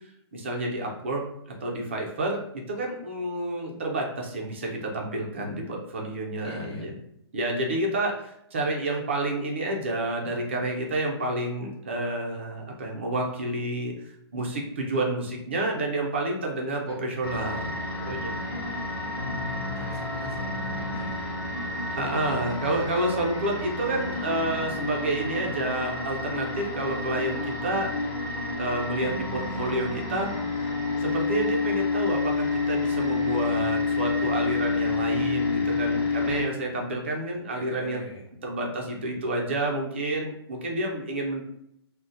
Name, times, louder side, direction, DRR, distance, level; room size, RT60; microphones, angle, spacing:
voice 1, 0.3-1.2 1.6-6.9 7.3-18.3 22.0-27.9 28.6-30.3 30.6-30.7 31.0-38.1 38.4-41.4, right 1 dB, 25° right, 0 dB, 0.4 m, -29 dB
voice 2, 6.4-6.9 16.9-17.0 19.7-21.3 37.5-38.2, left 1 dB, 70° left, -6 dB, 0.9 m, -43 dB
sound 1, 17.2-36.4, left 3 dB, 15° left, 1.0 m, -29 dB
2.6 x 2.1 x 3.7 m, 0.76 s
hypercardioid pair, 180°, 14 cm